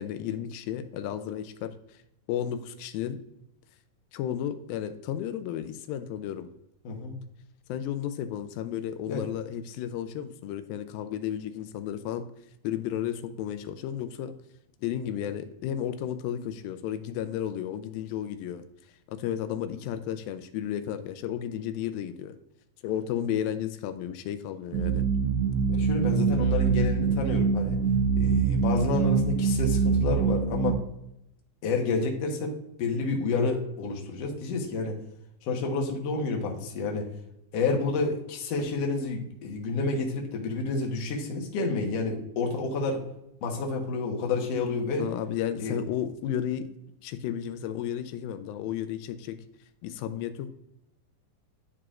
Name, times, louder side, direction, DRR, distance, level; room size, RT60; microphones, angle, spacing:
voice 1, 0.0-1.7 2.3-3.2 4.1-6.5 7.7-12.2 12.6-14.3 14.8-18.6 19.1-22.4 22.8-25.0 45.0-46.7 47.0-49.4 49.8-50.5, left 10 dB, 90° left, 9 dB, 2.4 m, -33 dB
voice 2, 6.8-7.2 9.1-9.3 25.7-27.8 28.2-30.8 31.6-35.0 35.4-37.1 37.5-43.0 43.4-45.1 45.6-45.8, left 3 dB, 60° left, 1 dB, 1.9 m, -29 dB
sound 1, 24.7-30.7, right 6 dB, 85° right, 2.5 m, -24 dB
11.0 x 4.8 x 2.4 m, 0.82 s
omnidirectional pair, 4.1 m